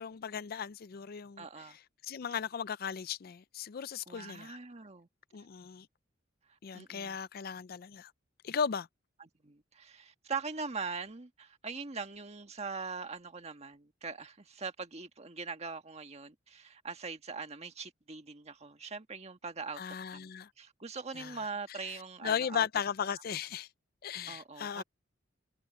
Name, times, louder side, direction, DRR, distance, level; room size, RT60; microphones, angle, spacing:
voice 1, 0.0-4.6 5.3-5.9 6.6-8.1 8.4-8.9 19.8-20.5 21.2-21.4 21.7-23.7 24.0-24.8, left 7 dB, 50° left, 0.4 m, -37 dB
voice 2, 1.4-1.8 4.1-5.1 6.7-7.2 9.4-19.8 20.1-20.3 20.6-22.7 24.3-24.8, right 4 dB, 35° right, 1.6 m, -42 dB
head